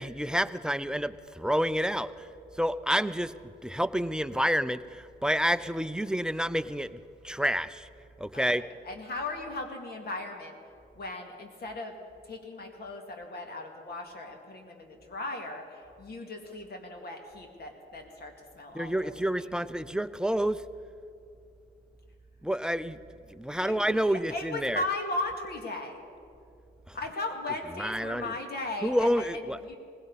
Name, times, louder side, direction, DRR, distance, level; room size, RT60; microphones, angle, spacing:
voice 1, 0.0-2.3 2.6-3.3 3.6-7.0 7.2-7.9 8.2-8.6 18.7-20.6 22.4-23.0 23.3-24.9 26.9-27.0 27.5-28.4 28.8-29.6, equal, 5° right, 13 dB, 0.4 m, -29 dB
voice 2, 8.3-10.5 11.0-11.9 12.3-19.5 23.6-23.8 24.1-26.0 26.9-29.4 29.7-29.8, left 2 dB, 50° left, 3 dB, 2.3 m, -37 dB
19.5 x 16.5 x 4.1 m, 2.6 s
cardioid pair, 90°, 20 cm